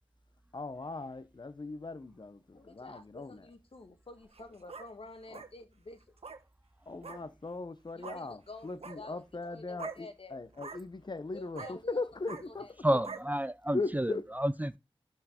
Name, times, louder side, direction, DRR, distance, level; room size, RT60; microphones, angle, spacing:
voice 1, 0.5-3.4 5.3-5.4 6.9-12.7 13.7-14.3, left 3 dB, 45° left, 0.9 m, -39 dB
voice 2, 2.5-6.0 7.9-9.2 9.5-10.4 11.3-12.1 12.5-13.0, left 3 dB, 65° left, 1.6 m, -50 dB
sound 1, 4.2-4.9 5.3-5.5 6.2-6.4 7.0-7.2 8.0-8.2 8.7-9.0 9.8-10.0 10.5-10.8 11.5-11.7 12.2-12.4 13.0-13.2, right 5 dB, 75° right, 1.1 m, -43 dB
voice 3, 12.8-14.8, right 1 dB, 15° right, 0.5 m, -30 dB
12.0 x 4.7 x 4.4 m
wide cardioid pair, 55°, 10 cm